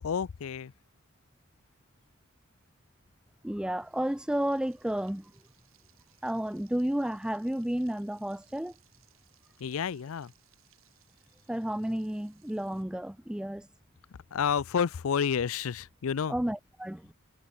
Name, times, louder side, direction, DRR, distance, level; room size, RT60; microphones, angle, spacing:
voice 1, 0.0-0.7 9.6-10.3 14.3-16.4, left 7 dB, 80° left, 0.5 m, -30 dB
voice 2, 3.4-5.3 6.2-8.7 11.5-13.7 16.3-17.1, right 1 dB, 5° right, 0.3 m, -32 dB
Frying (food), 3.7-12.8, right 13 dB, 75° right, 7.5 m, -66 dB
head